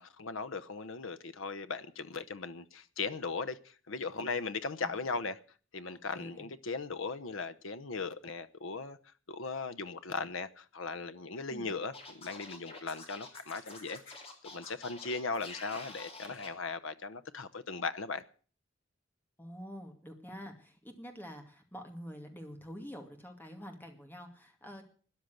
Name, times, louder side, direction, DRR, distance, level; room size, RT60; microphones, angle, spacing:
voice 1, 0.0-5.4 5.7-9.0 9.3-14.2 14.5-18.2, left 4 dB, 80° left, 0.9 m, -38 dB
voice 2, 6.1-6.5 11.5-11.7 19.4-24.8, equal, 10° left, 2.3 m, -47 dB
Scratching (performance technique), 11.9-16.5, left 3 dB, 30° left, 3.1 m, -48 dB
13.0 x 10.5 x 8.0 m
head